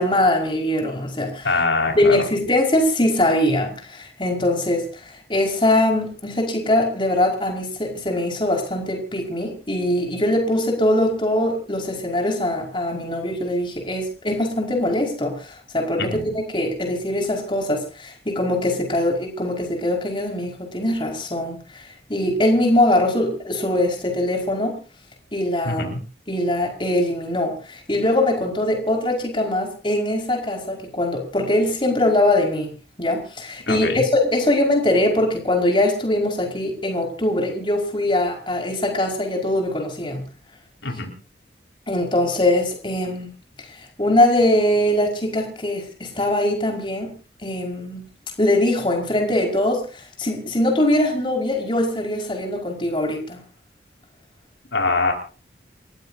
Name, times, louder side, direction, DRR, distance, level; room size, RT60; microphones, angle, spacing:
voice 1, 0.0-1.5 1.9-24.8 25.3-25.8 26.3-32.7 33.0-40.2 41.9-43.3 44.0-47.1 47.4-48.0 48.4-53.4, left 1 dB, 30° left, 1 dB, 5.2 m, -22 dB
voice 2, 1.4-2.2 16.0-16.3 25.7-26.0 33.7-34.0 40.8-41.1 54.7-55.1, left 3 dB, 90° left, 2 dB, 5.2 m, -23 dB
30.0 x 15.5 x 2.8 m, 0.36 s
head